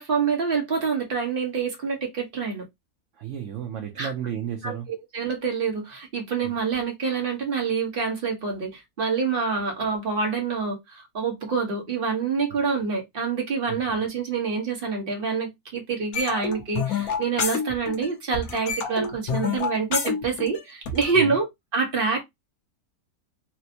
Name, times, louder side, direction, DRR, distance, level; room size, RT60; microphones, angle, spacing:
voice 1, 0.0-2.6 4.0-4.1 4.6-22.2, right 5 dB, 40° right, 1.2 m, -27 dB
voice 2, 3.2-4.9 6.4-6.5 13.7-13.8 21.1-21.4, right 9 dB, 60° right, 0.9 m, -32 dB
sound 1, 16.1-18.1 18.3-21.1, left 6 dB, 70° left, 1.2 m, -28 dB
4.2 x 2.1 x 2.7 m
omnidirectional pair, 1.6 m